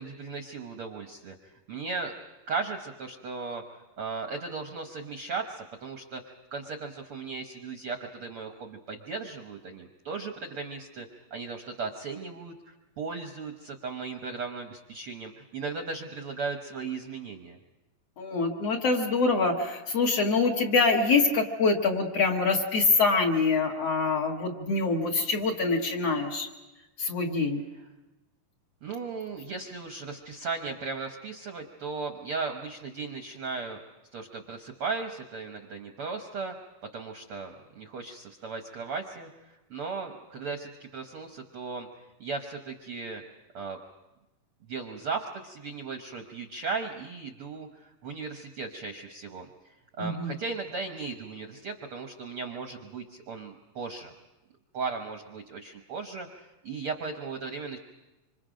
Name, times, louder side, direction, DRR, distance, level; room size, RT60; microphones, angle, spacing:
voice 1, 0.0-2.2 2.5-3.6 4.0-17.6 28.8-33.8 34.1-36.5 36.8-41.9 42.2-43.2 43.5-43.8 44.7-54.1 54.7-57.8, right 4 dB, 65° right, 4 dB, 1.4 m, -37 dB
voice 2, 18.2-26.5 27.0-27.6 50.0-50.4, left 4 dB, 50° left, 1 dB, 2.3 m, -25 dB
26.0 x 26.0 x 5.1 m, 1.0 s
omnidirectional pair, 4.0 m